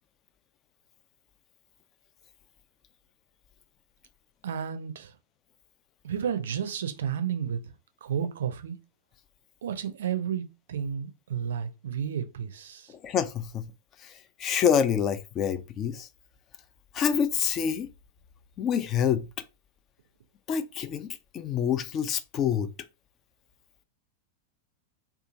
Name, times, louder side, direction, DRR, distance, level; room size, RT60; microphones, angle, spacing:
voice 1, 4.4-5.1 6.0-7.6 8.0-8.8 9.6-12.9, right 8 dB, 60° right, 0.4 m, -32 dB
voice 2, 12.9-13.7 14.0-16.1 16.9-17.9 18.6-19.3 20.5-22.7, left 8 dB, 30° left, 0.3 m, -27 dB
2.9 x 2.3 x 2.6 m
figure-of-eight pair, 90°, 0 cm